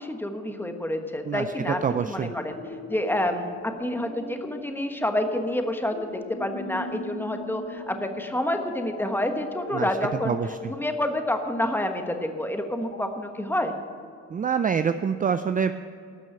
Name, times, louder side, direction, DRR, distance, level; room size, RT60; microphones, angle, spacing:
voice 1, 0.0-2.6 2.9-10.3 10.7-13.7, left 1 dB, 5° left, 5 dB, 1.3 m, -28 dB
voice 2, 1.2-2.3 9.7-9.9 10.2-10.7 14.3-15.7, right 7 dB, 30° right, 10 dB, 0.4 m, -26 dB
sound 1, 1.3-13.2, left 3 dB, 35° left, 3.4 m, -40 dB
12.5 x 6.1 x 8.8 m, 2.3 s
cardioid pair, 90°, 30 cm